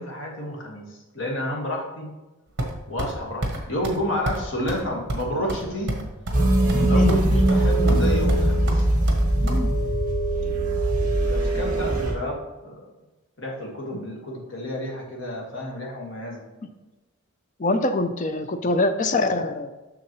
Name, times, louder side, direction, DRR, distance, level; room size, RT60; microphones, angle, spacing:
voice 1, 0.0-2.1 2.9-6.0 6.8-8.8 11.2-12.9 13.4-16.4, equal, 60° left, -1 dB, 1.7 m, -30 dB
sound 1, 2.6-3.1 3.4-3.6 3.8-4.0 4.3-4.4 4.7-4.8 5.1-6.4 6.7-7.2 7.5-8.0 8.3-9.6, right 1 dB, 55° right, 1.2 m, -29 dB
sound 2, 6.3-12.1, right 1 dB, 40° right, 1.9 m, -21 dB
voice 2, 17.6-19.7, left 2 dB, 35° left, 8 dB, 0.5 m, -23 dB
7.4 x 6.2 x 3.1 m, 1.1 s
head